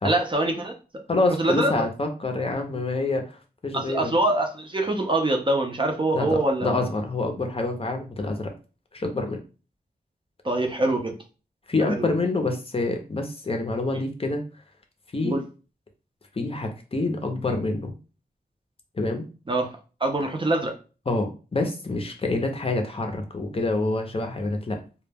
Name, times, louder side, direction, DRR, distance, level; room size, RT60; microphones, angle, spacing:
voice 1, 0.0-1.0 1.4-1.9 3.7-6.9 10.4-11.1 11.9-12.1 15.2-15.4 19.5-19.7 20.0-20.7, right 2 dB, 30° right, 3 dB, 0.5 m, -24 dB
voice 2, 1.1-3.4 3.6-4.1 6.1-8.5 8.9-9.4 11.7-14.4 15.1-15.4 16.4-17.9 19.0-19.3 21.1-24.8, left 2 dB, 35° left, 4 dB, 0.5 m, -27 dB
2.2 x 2.1 x 3.3 m, 0.34 s
wide cardioid pair, 105°, 17 cm